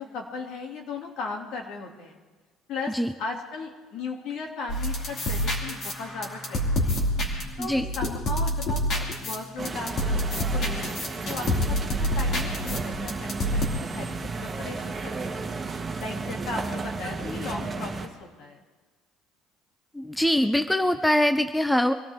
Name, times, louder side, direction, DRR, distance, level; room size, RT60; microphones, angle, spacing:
voice 1, 0.0-2.2 2.7-7.1 7.6-15.5 16.0-18.6, left 4 dB, 60° left, 1 dB, 2.5 m, -37 dB
sound 1, 4.7-13.7, equal, 40° left, 2.7 m, -28 dB
sound 2, 9.6-18.1, right 3 dB, 20° right, 1.5 m, -33 dB
voice 2, 19.9-21.9, left 1 dB, 5° left, 9 dB, 0.5 m, -23 dB
24.5 x 16.5 x 3.6 m, 1.4 s
cardioid pair, 145°, 0 cm